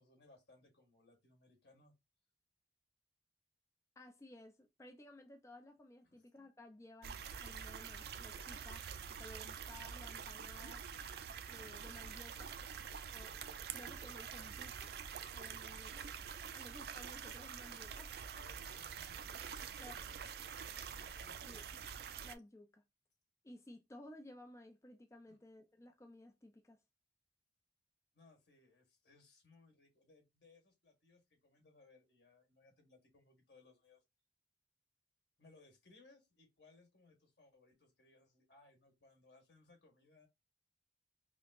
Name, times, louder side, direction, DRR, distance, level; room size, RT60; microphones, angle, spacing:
voice 1, 0.0-1.9 6.0-6.2 18.3-19.4 19.7-21.6 21.9-22.0 25.3-25.4 28.1-34.0 35.4-40.3, left 3 dB, 80° left, 1.5 m, -66 dB
voice 2, 4.0-10.8 11.5-12.5 13.1-13.4 13.7-14.9 15.3-18.1 19.8-20.0 21.4-21.6 22.2-22.8 23.4-26.8, left 1 dB, 15° left, 0.3 m, -56 dB
sound 1, 7.0-22.4, right 7 dB, 60° right, 0.3 m, -47 dB
5.1 x 2.0 x 2.4 m
head